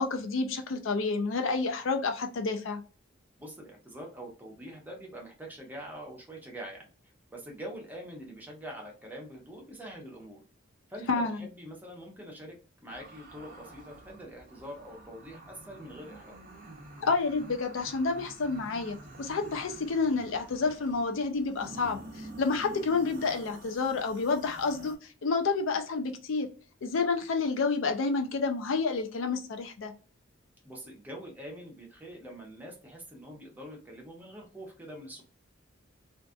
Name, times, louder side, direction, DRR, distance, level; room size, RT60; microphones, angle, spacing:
voice 1, 0.0-2.8 11.1-11.4 17.0-25.0 25.2-26.5 26.8-29.9, left 4 dB, 80° left, 0.4 m, -29 dB
voice 2, 3.4-6.9 7.3-10.4 10.9-16.4 30.6-35.2, equal, 10° right, 0.7 m, -44 dB
sound 1, 12.9-25.0, right 2 dB, 45° right, 0.6 m, -48 dB
2.5 x 2.4 x 2.3 m
head